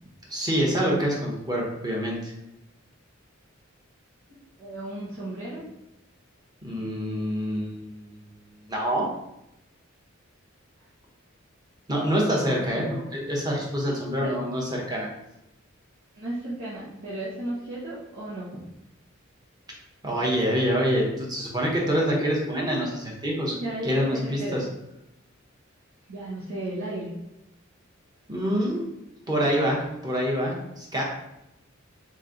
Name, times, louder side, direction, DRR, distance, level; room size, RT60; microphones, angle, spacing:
voice 1, 0.3-2.3 6.6-8.1 8.7-9.1 11.9-15.1 20.0-23.5 23.8-24.6 28.3-28.8 29.3-31.0, equal, 20° right, -3 dB, 1.0 m, -26 dB
voice 2, 4.6-5.6 12.5-12.9 14.2-14.4 16.1-18.6 22.0-22.3 23.5-24.6 26.1-27.1, right 1 dB, 90° right, -10 dB, 1.3 m, -34 dB
3.5 x 3.1 x 3.9 m, 0.87 s
head